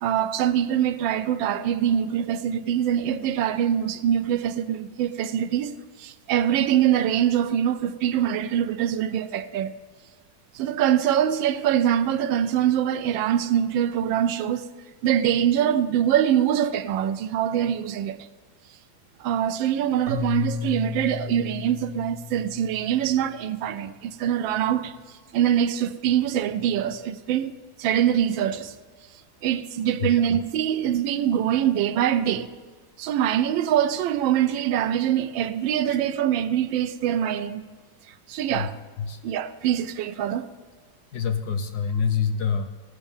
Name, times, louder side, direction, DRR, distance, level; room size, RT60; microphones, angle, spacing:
voice 1, 0.0-5.7 6.0-9.7 10.5-14.7 15.0-18.3 19.2-24.9 25.3-27.5 27.8-28.7 29.4-32.5 33.0-37.6 38.3-38.7 39.2-40.5, right 10 dB, 80° right, 1.3 m, -24 dB
Keyboard (musical), 20.1-23.2, left 6 dB, 60° right, 1.7 m, -33 dB
voice 2, 41.1-42.7, left 6 dB, 65° left, 1.1 m, -26 dB
17.0 x 6.3 x 7.1 m
omnidirectional pair, 2.1 m